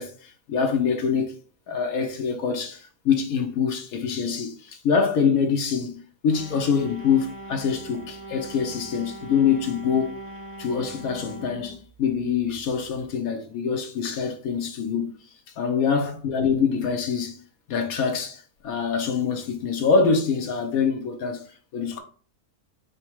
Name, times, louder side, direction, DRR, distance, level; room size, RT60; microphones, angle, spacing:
voice 1, 0.0-1.4 1.7-10.2 10.6-15.1 15.6-17.4 17.7-21.4 21.7-22.0, left 6 dB, 70° left, 1.3 m, -25 dB
sound 1, 6.3-13.1, right 1 dB, 45° right, 0.7 m, -41 dB
5.2 x 2.3 x 4.5 m
omnidirectional pair, 1.6 m